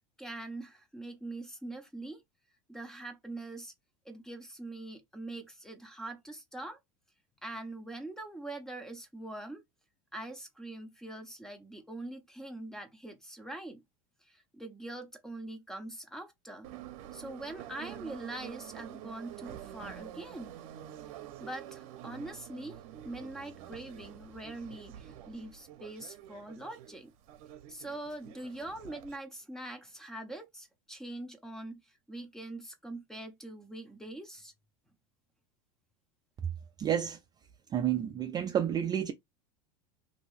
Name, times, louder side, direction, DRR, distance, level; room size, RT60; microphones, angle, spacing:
voice 1, 0.2-2.2 2.7-3.7 4.0-6.8 7.4-9.6 10.1-13.8 14.2-16.7 17.1-20.5 21.4-27.1 27.7-34.5, right 2 dB, 5° left, 0.7 m, -43 dB
Subway metro underground, 16.6-29.2, right 11 dB, 65° right, 0.7 m, -48 dB
voice 2, 36.8-37.2 37.7-39.1, right 10 dB, 25° right, 0.3 m, -30 dB
2.9 x 2.7 x 3.2 m
supercardioid pair, 130°, 18 cm